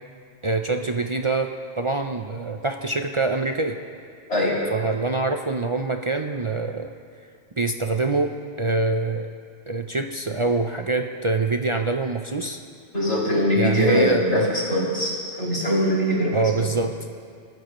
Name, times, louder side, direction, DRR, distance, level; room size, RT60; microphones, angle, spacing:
voice 1, 0.4-3.8 4.7-6.9 7.6-9.3 9.7-12.6 13.6-14.5 16.3-17.0, right 3 dB, 40° right, 5 dB, 0.5 m, -25 dB
voice 2, 12.9-14.4 14.7-15.1 15.4-16.6, equal, 90° left, -7 dB, 5.9 m, -22 dB
28.0 x 14.5 x 3.1 m, 2.2 s
omnidirectional pair, 1.2 m